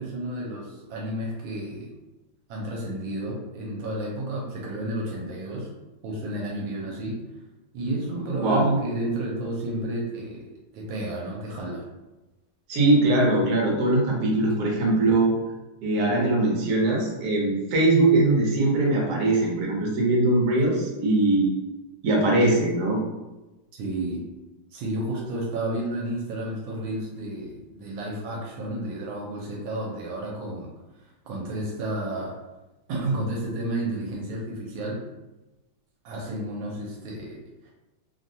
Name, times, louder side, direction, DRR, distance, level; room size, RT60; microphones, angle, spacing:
voice 1, 0.0-1.9 2.5-5.7 6.0-7.2 7.7-10.5 10.7-11.8 23.8-24.2 24.7-30.7 31.3-32.3 32.9-35.0 36.0-37.7, right 1 dB, 80° right, -2 dB, 1.4 m, -31 dB
voice 2, 12.7-15.3 15.8-21.5 22.0-23.0, right 2 dB, 60° right, -2 dB, 1.2 m, -21 dB
3.3 x 2.2 x 2.6 m, 1.1 s
omnidirectional pair, 2.2 m